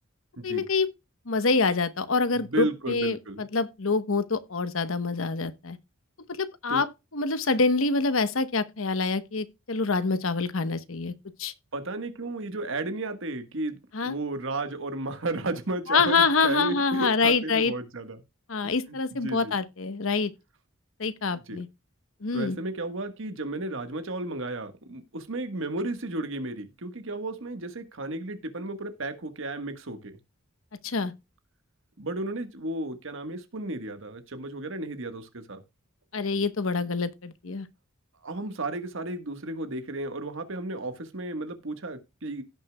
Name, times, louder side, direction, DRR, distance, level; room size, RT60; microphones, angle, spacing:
voice 1, 0.4-0.9 1.3-5.8 6.3-6.9 7.1-11.1 11.4-11.5 13.9-14.1 15.9-17.7 18.5-20.3 21.0-21.7 22.2-22.6 30.8-31.1 36.1-37.7, left 4 dB, 70° left, 1.0 m, -26 dB
voice 2, 2.3-3.4 6.7-6.8 11.7-18.2 18.6-19.0 19.2-19.5 21.3-21.6 22.3-30.2 32.0-35.6 38.2-42.4, right 2 dB, 65° right, 1.4 m, -33 dB
16.5 x 6.5 x 2.2 m
head